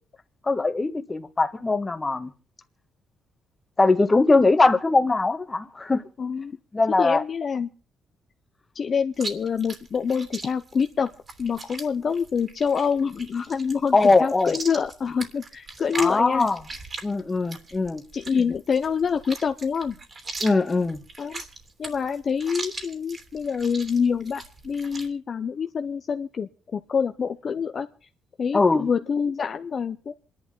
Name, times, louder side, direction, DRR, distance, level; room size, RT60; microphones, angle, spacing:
voice 1, 0.5-2.3 3.8-6.0 6.7-7.2 13.9-14.5 15.9-16.6 17.0-18.0 20.4-21.0 28.5-28.9, left 3 dB, 25° left, 1.5 m, -21 dB
voice 2, 6.2-6.6 7.0-7.7 8.7-11.1 11.4-16.5 18.1-20.0 21.2-21.4 21.8-27.9 28.4-30.1, left 6 dB, 45° left, 0.8 m, -26 dB
Chewing mastication, 9.1-25.1, right 3 dB, 40° right, 3.1 m, -39 dB
27.5 x 11.0 x 3.8 m
cardioid pair, 90°, 0 cm